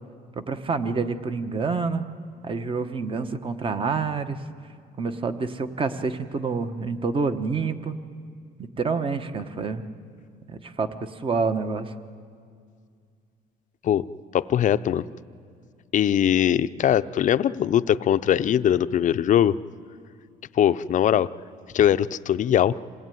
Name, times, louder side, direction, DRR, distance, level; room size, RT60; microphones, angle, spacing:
voice 1, 0.3-2.0 2.4-4.5 5.0-8.0 8.6-9.8 10.5-11.9, right 4 dB, 30° right, 9 dB, 1.2 m, -27 dB
voice 2, 14.3-15.0 15.9-19.6 20.5-21.3 21.7-22.7, left 10 dB, 50° left, 12 dB, 0.6 m, -21 dB
26.5 x 18.0 x 9.3 m, 2.2 s
cardioid pair, 110°, 17 cm